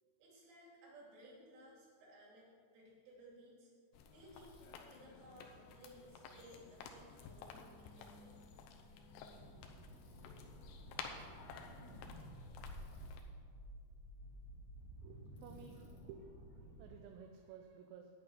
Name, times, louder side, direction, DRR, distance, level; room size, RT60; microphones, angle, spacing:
voice 1, 0.2-3.7 4.1-4.5 4.9-8.4, right 1 dB, 70° right, -4 dB, 5.5 m, -59 dB
sound 1, 3.9-13.2, left 5 dB, 85° left, 2.3 m, -53 dB
Bicycle, 4.3-4.9 7.2-7.8 9.9-10.4 12.6-13.3 15.4-16.0, left 5 dB, 60° left, 3.6 m, -75 dB
sound 2, 9.3-16.9, right 1 dB, 45° left, 2.3 m, -54 dB
voice 2, 15.0-18.1, right 7 dB, 85° right, 4 dB, 3.4 m, -55 dB
11.0 x 6.1 x 9.1 m, 2.1 s
omnidirectional pair, 5.9 m